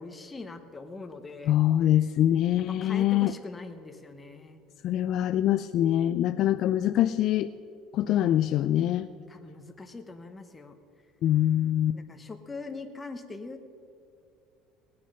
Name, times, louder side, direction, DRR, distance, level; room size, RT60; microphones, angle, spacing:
voice 1, 0.0-1.6 2.8-4.6 8.1-8.5 9.3-10.8 11.9-13.7, left 3 dB, 15° left, 6 dB, 1.0 m, -42 dB
voice 2, 1.5-3.3 4.8-7.5 7.9-9.1 11.2-12.0, left 12 dB, 50° left, 12 dB, 0.3 m, -24 dB
18.5 x 9.5 x 5.4 m, 2.5 s
cardioid pair, 150°, 0 cm